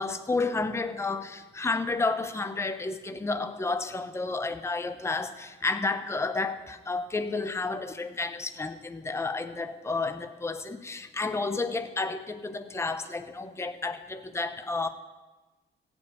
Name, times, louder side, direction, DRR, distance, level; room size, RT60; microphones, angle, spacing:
voice 1, 0.0-14.9, left 3 dB, 15° left, 9 dB, 0.8 m, -31 dB
15.5 x 5.3 x 8.2 m, 1.2 s
cardioid pair, 90°, 20 cm